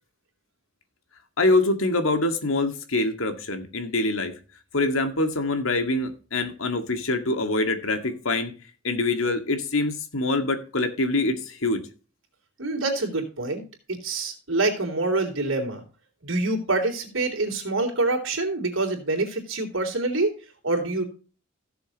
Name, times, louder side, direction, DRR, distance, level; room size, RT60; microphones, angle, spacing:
voice 1, 1.4-4.3 4.7-8.5 8.8-11.8, left 2 dB, 90° left, 2.0 m, -25 dB
voice 2, 12.6-13.6 13.9-15.8 16.2-20.3 20.6-21.0, right 2 dB, 75° right, 3.6 m, -26 dB
16.0 x 7.1 x 3.0 m
head